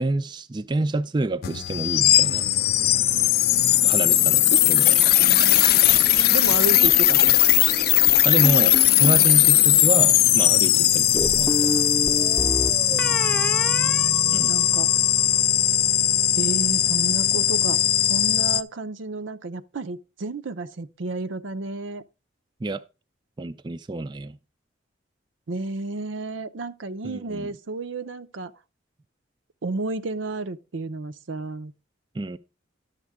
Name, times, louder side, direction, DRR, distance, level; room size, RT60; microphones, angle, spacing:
voice 1, 0.0-2.5 3.8-5.0 8.2-8.7 9.0-11.7 14.3-14.6 22.6-22.8 23.4-24.4 27.0-27.5 32.1-32.4, right 2 dB, 25° right, 0.4 m, -28 dB
sound 1, 1.4-18.6, left 12 dB, 50° left, 0.4 m, -19 dB
voice 2, 6.3-7.4 12.9-14.9 16.4-17.8 18.1-22.0 25.5-28.5 29.6-31.7, right 3 dB, 85° right, 0.6 m, -32 dB
sound 2, 8.4-9.3 11.2-14.9, left 1 dB, 5° left, 0.7 m, -29 dB
11.5 x 7.3 x 3.5 m
head